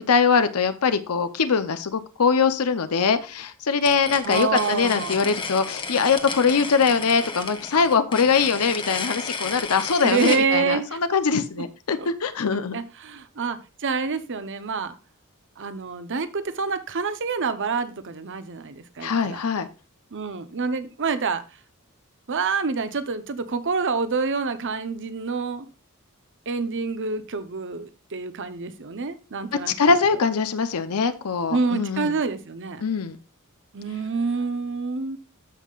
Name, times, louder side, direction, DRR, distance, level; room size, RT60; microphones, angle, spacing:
voice 1, 0.0-12.8 19.0-19.7 29.7-32.1 32.8-33.2, left 5 dB, 85° left, 0.7 m, -22 dB
sound 1, 3.8-10.4, left 4 dB, 25° left, 1.0 m, -33 dB
voice 2, 4.2-5.3 10.0-11.0 12.0-12.1 12.7-14.9 15.6-19.4 20.1-21.4 22.3-25.7 26.5-29.7 31.5-32.8 33.7-35.2, right 4 dB, 60° right, 0.9 m, -27 dB
14.0 x 5.5 x 2.4 m
head